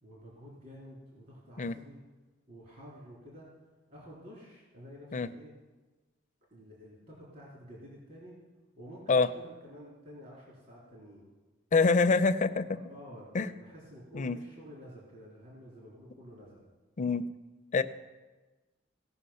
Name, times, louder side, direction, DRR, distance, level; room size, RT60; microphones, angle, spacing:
voice 1, 0.0-2.0 2.5-3.5 3.9-5.5 6.5-8.4 8.7-11.3 12.7-16.6, equal, 45° right, -5 dB, 3.1 m, -50 dB
voice 2, 11.7-12.8 13.3-13.5 14.1-14.4 17.0-17.2 17.7-17.8, left 4 dB, 40° left, 10 dB, 0.4 m, -25 dB
17.0 x 5.8 x 5.6 m, 1.2 s
head